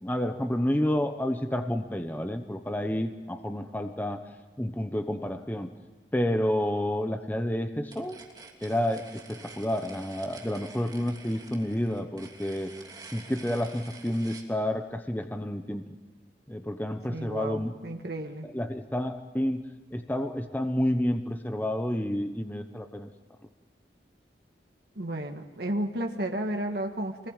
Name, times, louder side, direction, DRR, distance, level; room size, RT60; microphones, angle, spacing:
voice 1, 0.0-4.2 4.6-5.7 6.1-8.2 8.6-12.7 13.1-15.8 16.5-17.7 18.5-19.6 19.9-23.1, left 1 dB, 10° left, 7 dB, 1.0 m, -30 dB
sound 1, 7.9-14.5, right 3 dB, 25° right, 3.1 m, -48 dB
voice 2, 17.1-18.5 25.0-27.3, right 1 dB, 65° right, 3 dB, 1.8 m, -32 dB
25.5 x 20.0 x 9.1 m, 1.3 s
head